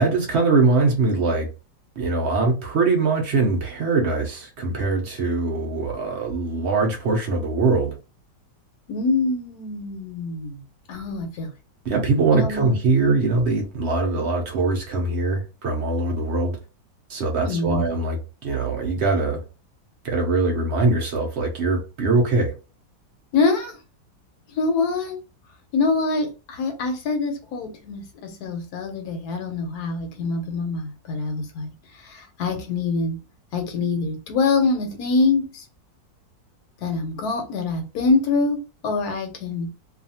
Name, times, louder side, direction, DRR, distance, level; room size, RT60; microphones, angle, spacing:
voice 1, 0.0-1.5 2.0-8.0 11.8-16.6 17.1-19.4 20.0-22.5, right 3 dB, 80° right, 0.6 m, -22 dB
voice 2, 8.9-10.6 10.9-11.5 12.3-12.8 17.4-17.9 23.3-23.8 24.5-25.2 25.7-33.2 33.5-35.6 36.8-39.7, left 3 dB, 65° left, 1.1 m, -25 dB
2.7 x 2.4 x 2.7 m
omnidirectional pair, 1.9 m